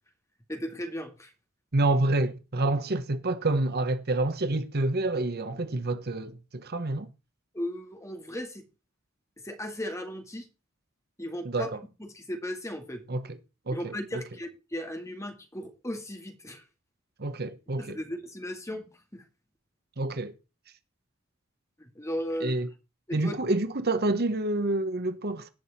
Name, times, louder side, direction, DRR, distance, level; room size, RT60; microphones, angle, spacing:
voice 1, 0.5-1.3 7.5-8.7 9.4-10.5 11.2-11.7 12.0-13.0 13.7-16.6 17.8-19.2 21.8-22.6 23.1-23.4, equal, 15° left, 2.2 m, -36 dB
voice 2, 1.7-7.1 11.4-11.8 13.1-13.4 13.7-14.2 17.2-18.0 20.0-20.3 22.4-22.7 23.1-25.5, right 2 dB, 50° right, 1.1 m, -28 dB
18.0 x 6.3 x 4.2 m
head